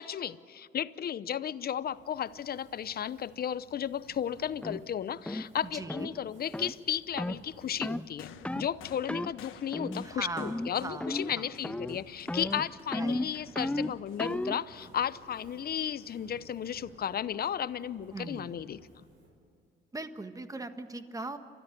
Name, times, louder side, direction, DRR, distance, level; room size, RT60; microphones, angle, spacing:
voice 1, 0.0-19.0, left 9 dB, 50° left, 16 dB, 0.8 m, -34 dB
Fire, 1.5-19.5, right 2 dB, 90° right, 5.8 m, -58 dB
sound 1, 4.6-4.8 5.3-5.5 5.9-6.1 6.5-6.7 7.2-7.4 7.8-8.1 8.5-8.7 9.1-9.3 9.7-10.1 10.4-10.7 11.0-11.4 11.6-12.0 12.3-14.6, left 1 dB, 5° left, 0.5 m, -34 dB
voice 2, 5.6-6.1 10.0-11.1 11.4-11.5 12.9-13.2 18.1-18.5 19.9-21.4, right 2 dB, 15° right, 8 dB, 1.5 m, -40 dB
sound 2, 8.2-15.7 16.7-16.8, left 9 dB, 85° left, 1.4 m, -54 dB
29.5 x 13.5 x 9.8 m, 2.1 s
cardioid pair, 90°, 20 cm